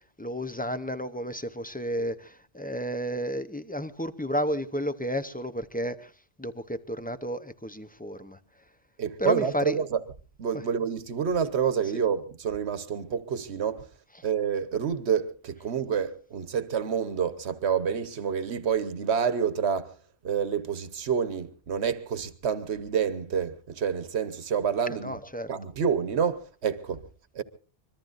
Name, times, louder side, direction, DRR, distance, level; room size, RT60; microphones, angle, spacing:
voice 1, 0.2-6.1 6.4-8.4 9.2-9.8 10.5-10.6 11.9-12.0 25.0-25.5, equal, 10° left, 0.6 m, -32 dB
voice 2, 9.0-10.0 10.4-13.9 14.2-19.9 20.2-25.2 25.5-27.0 27.3-27.4, right 7 dB, 90° right, 1.3 m, -28 dB
25.0 x 22.5 x 2.5 m
omnidirectional pair, 1.1 m